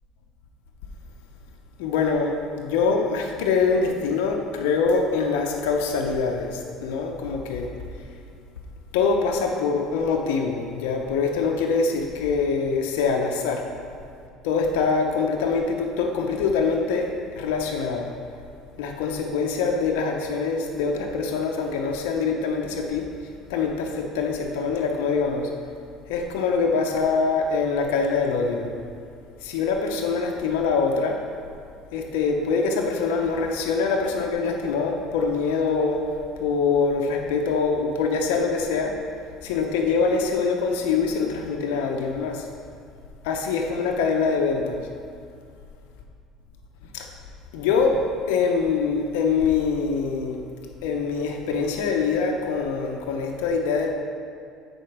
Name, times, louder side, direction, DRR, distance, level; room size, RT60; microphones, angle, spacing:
voice 1, 1.8-7.7 8.9-13.6 14.4-18.1 18.8-23.1 23.5-25.5 26.1-28.7 29.4-31.2 31.9-36.0 36.4-39.0 39.4-42.5 43.2-44.8 46.9-47.1 47.5-50.4 50.8-53.9, left 4 dB, 90° left, 2 dB, 0.8 m, -24 dB
8.1 x 4.4 x 6.0 m, 2.3 s
supercardioid pair, 105°, 0 cm